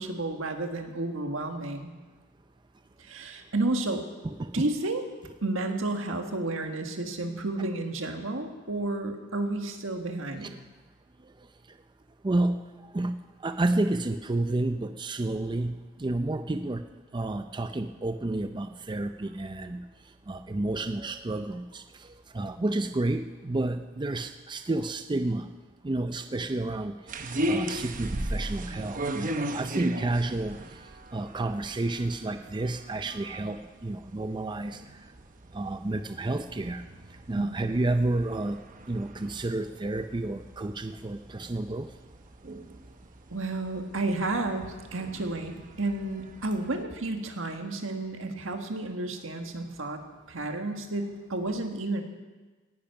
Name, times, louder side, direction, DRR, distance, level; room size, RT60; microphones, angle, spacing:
voice 1, 0.0-1.9 3.0-4.0 4.5-5.0 5.4-10.5 37.3-37.6 43.3-50.0 50.3-52.0, right 2 dB, 80° right, 4 dB, 1.7 m, -31 dB
voice 2, 4.2-4.6 10.4-10.6 12.2-12.6 12.9-13.2 13.4-16.8 17.1-19.8 20.3-25.5 25.8-26.9 27.5-30.6 31.1-34.8 35.5-36.8 37.3-38.6 38.9-41.9, right 2 dB, 25° right, 8 dB, 0.5 m, -30 dB
sound 1, 27.1-46.8, right 1 dB, 40° right, 0.9 m, -38 dB
17.5 x 10.5 x 5.9 m, 1.3 s
head